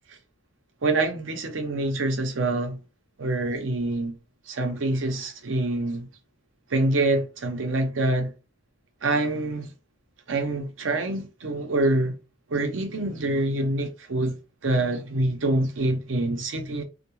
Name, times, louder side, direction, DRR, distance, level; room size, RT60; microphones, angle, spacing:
voice 1, 0.8-2.8 3.2-4.2 4.5-6.1 6.7-8.3 9.0-9.7 10.3-12.2 12.5-14.4 14.6-16.8, right 2 dB, 85° right, 0.6 m, -26 dB
2.2 x 2.2 x 3.0 m
head